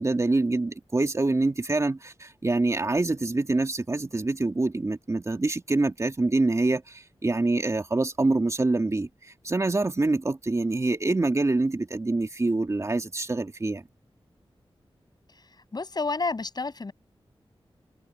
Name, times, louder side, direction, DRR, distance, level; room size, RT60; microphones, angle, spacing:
voice 1, 0.0-13.8, right 2 dB, 30° right, 2.5 m, -25 dB
voice 2, 15.3-16.9, left 3 dB, 45° left, 7.1 m, -31 dB
wide cardioid pair, 100°, 10 cm